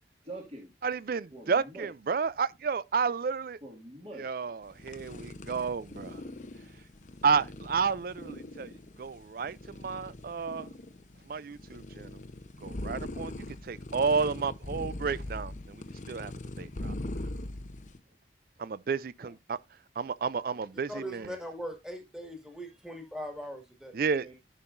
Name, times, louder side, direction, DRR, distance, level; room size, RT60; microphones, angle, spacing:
voice 1, 0.2-0.7 1.3-1.9 3.6-4.5 19.2-19.3 24.1-24.3, right 1 dB, 35° right, 2.1 m, -45 dB
voice 2, 0.8-3.6 4.2-6.2 7.2-10.7 11.3-12.1 12.6-13.3 13.6-16.9 18.6-19.6 20.0-21.3 23.9-24.3, right 5 dB, 55° right, 0.4 m, -31 dB
sound 1, 4.6-18.0, left 1 dB, 45° left, 0.7 m, -41 dB
voice 3, 20.9-23.9, equal, 5° right, 2.0 m, -40 dB
14.5 x 5.5 x 2.6 m
head